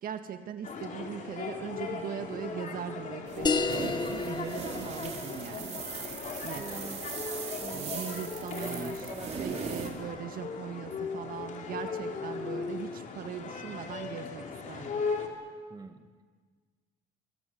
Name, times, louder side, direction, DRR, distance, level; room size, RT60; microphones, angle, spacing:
voice 1, 0.0-5.8 6.4-6.7 7.7-9.0 9.4-15.0, right 9 dB, 60° right, 8 dB, 1.8 m, -40 dB
sound 1, 0.6-15.3, left 5 dB, 50° left, 3.6 m, -38 dB
sound 2, 3.3-9.9, right 5 dB, 40° right, 4.5 m, -39 dB
sound 3, 3.4-8.5, left 4 dB, 25° left, 1.4 m, -35 dB
voice 2, 6.6-7.0 7.6-8.0 8.6-9.3 15.7-16.1, right 3 dB, 20° right, 7 dB, 1.7 m, -43 dB
24.0 x 21.0 x 7.9 m, 1.5 s
cardioid pair, 110°, 17 cm